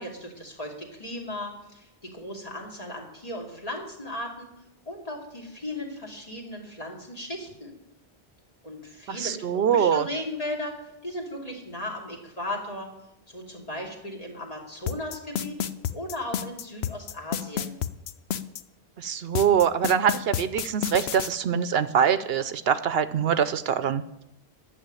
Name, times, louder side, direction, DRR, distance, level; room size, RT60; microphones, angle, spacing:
voice 1, 0.0-4.5 4.9-7.7 8.6-12.9 13.3-15.6 15.9-17.8, left 1 dB, 35° left, 0 dB, 2.7 m, -36 dB
voice 2, 9.1-10.1 19.0-24.2, right 8 dB, 70° right, 13 dB, 0.8 m, -24 dB
sound 1, 14.9-18.6 19.4-21.3, left 9 dB, 75° left, 0.9 m, -30 dB
11.5 x 6.9 x 9.0 m, 0.84 s
omnidirectional pair, 1.1 m